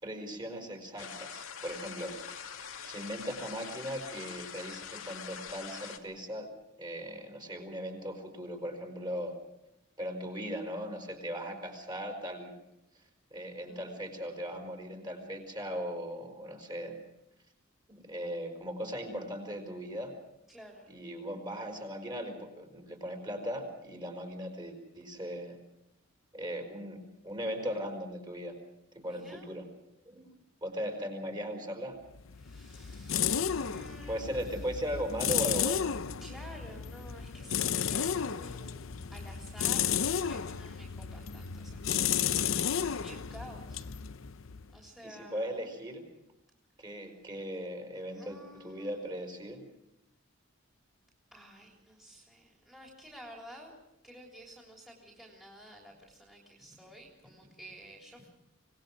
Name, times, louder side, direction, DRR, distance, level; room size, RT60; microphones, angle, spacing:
voice 1, 0.0-2.1 2.8-6.5 6.8-9.3 10.0-12.5 13.3-16.9 17.9-20.1 20.9-25.6 26.3-27.0 27.2-28.6 28.9-29.6 30.0-30.3 30.6-32.0 34.1-35.9 45.0-46.0 46.8-49.6, equal, 20° right, 3 dB, 4.8 m, -38 dB
sound 1, 1.0-6.0, left 7 dB, 90° left, 2.3 m, -44 dB
voice 2, 13.5-14.4 20.5-20.9 29.0-29.5 32.3-34.6 36.2-43.8 44.7-45.5 46.8-46.9 48.1-49.3 51.3-53.7 54.0-58.3, equal, ahead, -3 dB, 3.5 m, -52 dB
sound 2, 32.1-44.8, left 8 dB, 70° left, 0.7 m, -33 dB
25.5 x 19.5 x 6.3 m, 0.88 s
head